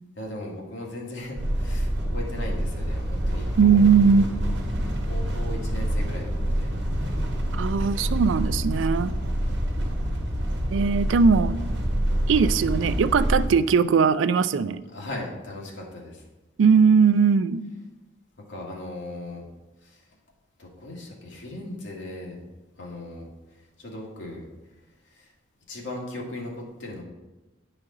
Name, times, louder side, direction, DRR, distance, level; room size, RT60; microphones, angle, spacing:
voice 1, 0.2-4.4 4.7-6.7 14.9-16.3 18.5-19.5 19.8-20.1 20.6-22.4 22.8-23.3 23.8-24.4 25.1-25.3 25.7-27.0, left 1 dB, 80° left, -2 dB, 1.7 m, -38 dB
sound 1, 1.4-13.5, equal, 65° right, 1.2 m, -27 dB
voice 2, 3.6-4.3 7.5-9.1 9.8-9.9 10.7-11.6 12.3-14.8 16.6-17.6, right 5 dB, 85° right, 14 dB, 0.4 m, -19 dB
9.9 x 5.0 x 3.8 m, 1.1 s
head